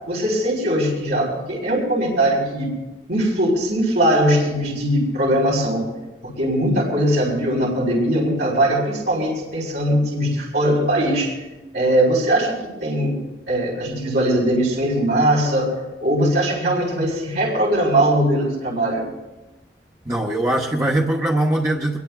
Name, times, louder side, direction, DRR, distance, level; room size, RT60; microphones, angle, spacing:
voice 1, 0.1-2.7 3.1-5.8 6.4-11.3 11.7-12.5 12.8-13.2 13.5-15.7 16.0-19.1, right 1 dB, 80° right, -4 dB, 4.2 m, -20 dB
voice 2, 20.0-22.0, right 1 dB, 20° right, -2 dB, 1.0 m, -21 dB
24.0 x 21.0 x 2.4 m, 1.1 s
head